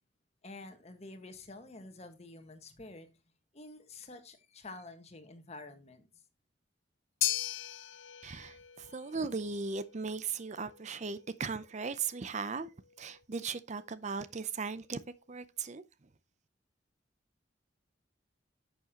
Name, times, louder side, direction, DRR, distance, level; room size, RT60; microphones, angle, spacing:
voice 1, 0.4-3.1 3.5-6.1, left 2 dB, 35° left, 1.5 m, -49 dB
sound 1, 7.2-15.6, left 13 dB, 90° left, 0.8 m, -41 dB
voice 2, 8.2-12.7 13.0-15.0 15.3-15.8, right 5 dB, 40° right, 0.6 m, -37 dB
11.0 x 7.1 x 2.9 m
head